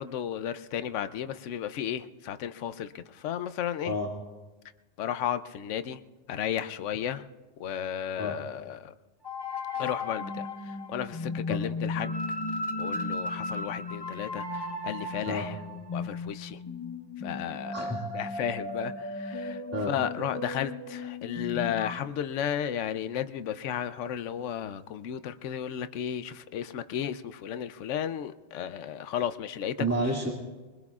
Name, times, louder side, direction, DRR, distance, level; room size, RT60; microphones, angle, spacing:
voice 1, 0.0-4.0 5.0-6.0 6.3-7.2 7.6-8.9 9.8-10.5 10.9-12.1 12.8-14.5 14.8-15.6 15.9-16.6 17.2-19.6 19.9-29.7, left 9 dB, 80° left, 11 dB, 1.0 m, -33 dB
sound 1, 9.2-22.0, left 2 dB, 25° left, 0.8 m, -35 dB
voice 2, 17.7-18.2 19.7-19.9 29.8-30.3, equal, 10° right, -3 dB, 2.1 m, -30 dB
23.5 x 20.5 x 2.4 m, 1.2 s
omnidirectional pair, 1.2 m